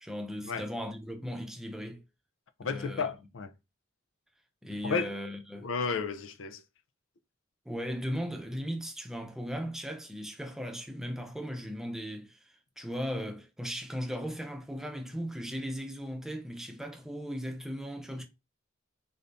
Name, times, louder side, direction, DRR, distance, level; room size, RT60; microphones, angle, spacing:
voice 1, 0.0-2.0 2.6-3.1 4.6-5.7 7.7-18.3, equal, 5° right, 0.6 m, -37 dB
voice 2, 2.6-3.5 4.8-5.1 5.6-6.6, left 5 dB, 85° left, 0.5 m, -32 dB
3.8 x 2.7 x 3.4 m
head